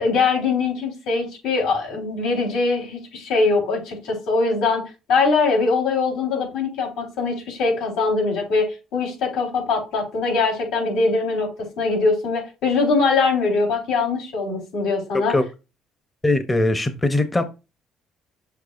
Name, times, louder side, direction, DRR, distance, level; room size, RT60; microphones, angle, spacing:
voice 1, 0.0-4.8 5.1-8.7 8.9-11.5 11.8-15.3, left 4 dB, 80° left, 3.7 m, -22 dB
voice 2, 16.2-17.4, left 2 dB, 15° left, 0.7 m, -20 dB
6.6 x 6.3 x 2.5 m
cardioid pair, 115°, 0 cm